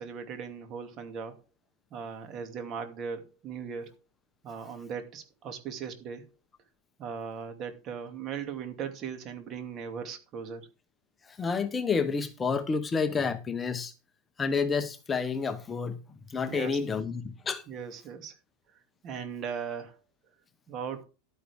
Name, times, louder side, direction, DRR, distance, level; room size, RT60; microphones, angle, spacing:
voice 1, 0.0-1.4 1.9-4.0 4.4-6.3 7.0-10.7 16.5-16.8 17.7-18.4 19.0-20.0 20.7-21.1, right 6 dB, 35° right, 2.4 m, -38 dB
voice 2, 11.3-13.9 14.4-16.0 16.3-17.6, left 5 dB, 20° left, 0.9 m, -29 dB
12.0 x 9.7 x 3.5 m
supercardioid pair, 130°, 0 cm